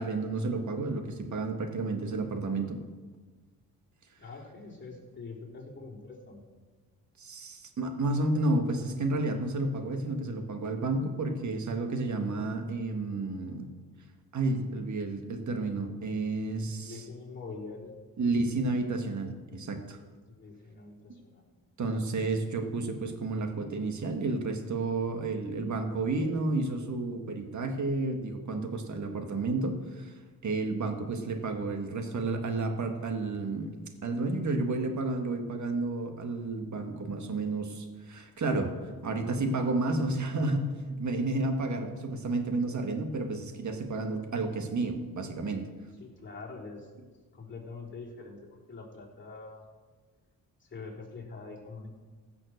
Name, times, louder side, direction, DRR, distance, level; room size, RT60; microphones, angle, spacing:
voice 1, 0.0-2.8 7.2-13.7 14.3-17.0 18.2-20.0 21.8-30.1 30.4-33.7 34.0-38.7 39.0-45.7, right 2 dB, 50° right, 5 dB, 1.9 m, -31 dB
voice 2, 4.2-6.4 16.8-17.9 20.3-21.4 46.0-46.9 47.3-49.7 50.6-51.9, left 4 dB, 30° left, -4 dB, 3.7 m, -44 dB
15.5 x 6.0 x 6.6 m, 1.4 s
cardioid pair, 80°, 36 cm